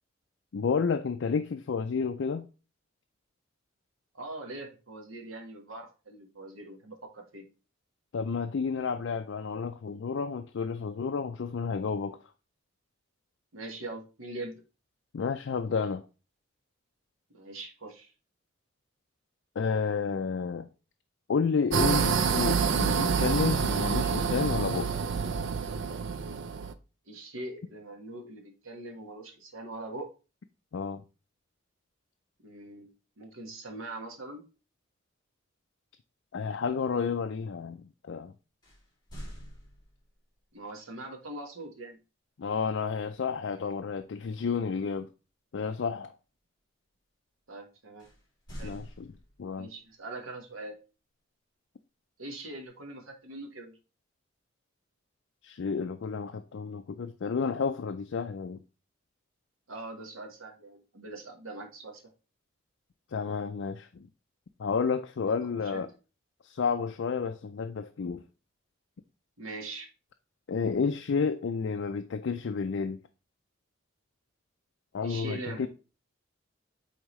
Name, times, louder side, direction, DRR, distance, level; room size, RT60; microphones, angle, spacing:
voice 1, 0.5-2.5 8.1-12.2 15.1-16.0 19.6-20.7 21.3-24.9 30.7-31.0 36.3-38.3 42.4-45.1 45.5-46.1 48.6-49.1 49.4-49.7 55.4-58.6 63.1-64.1 64.6-65.9 66.4-68.2 70.5-73.0 74.9-75.7, left 5 dB, 65° left, 0.4 m, -31 dB
voice 2, 4.1-7.4 13.5-14.6 17.3-18.1 27.1-30.1 32.4-32.9 33.2-34.4 40.5-42.0 47.5-48.1 48.6-48.8 49.5-50.8 52.2-53.7 59.7-62.0 65.2-65.9 69.4-69.9 75.0-75.7, right 2 dB, 90° right, 1.4 m, -42 dB
sound 1, 21.7-26.7, right 5 dB, 65° right, 0.5 m, -27 dB
sound 2, 38.6-40.3 43.0-43.3 43.7-44.0 48.0-49.7, equal, 20° left, 2.8 m, -46 dB
8.3 x 3.6 x 3.1 m
head